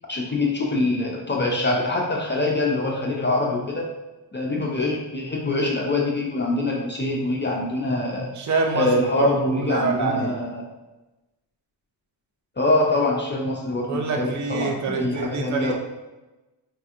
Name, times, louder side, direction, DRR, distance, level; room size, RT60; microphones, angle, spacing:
voice 1, 0.1-3.9 4.3-8.4 8.7-10.7 12.6-15.7, left 2 dB, 30° left, -2 dB, 0.3 m, -24 dB
voice 2, 8.3-8.9 9.2-10.3 13.9-15.7, right 4 dB, 40° right, 2 dB, 0.4 m, -25 dB
4.1 x 2.6 x 2.4 m, 1.1 s
wide cardioid pair, 135°, 45 cm